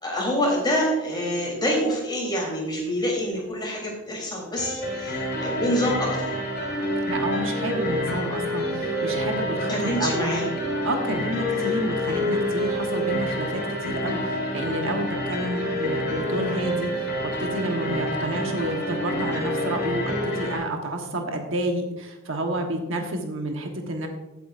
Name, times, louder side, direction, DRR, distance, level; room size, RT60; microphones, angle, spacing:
voice 1, 0.0-6.4 9.7-10.4 11.5-11.8, equal, 20° left, -2 dB, 3.4 m, -26 dB
sound 1, 4.6-20.6, equal, 45° left, 3.9 m, -28 dB
voice 2, 7.1-10.4 10.8-24.1, right 1 dB, 60° right, 3 dB, 1.2 m, -30 dB
15.5 x 8.4 x 2.5 m, 1.0 s
head